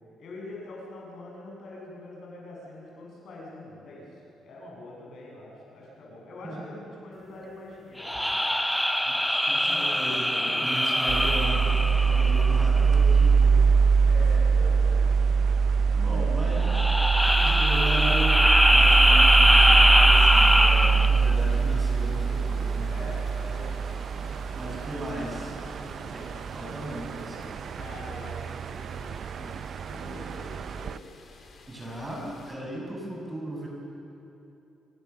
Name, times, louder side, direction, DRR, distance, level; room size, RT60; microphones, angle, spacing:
voice 1, 0.2-8.4 9.5-9.9 10.2-10.7 14.0-15.3 15.7-16.5 22.9-23.8 25.6-26.6 27.7-31.0, left 1 dB, 65° left, -3 dB, 7.4 m, -44 dB
sound 1, 8.0-12.8 16.6-21.3, equal, 5° left, 0.5 m, -22 dB
voice 2, 9.5-13.7 15.9-16.8 17.4-18.4 18.7-22.9 24.5-25.6 26.1-26.2 26.5-27.5 31.7-33.7, right 1 dB, 20° right, -1 dB, 7.2 m, -36 dB
sound 2, 11.1-31.0, right 5 dB, 55° right, 0.4 m, -23 dB
sound 3, 20.3-32.5, left 4 dB, 50° left, 3.8 m, -51 dB
29.0 x 17.5 x 7.2 m, 2.8 s
cardioid pair, 90°, 0 cm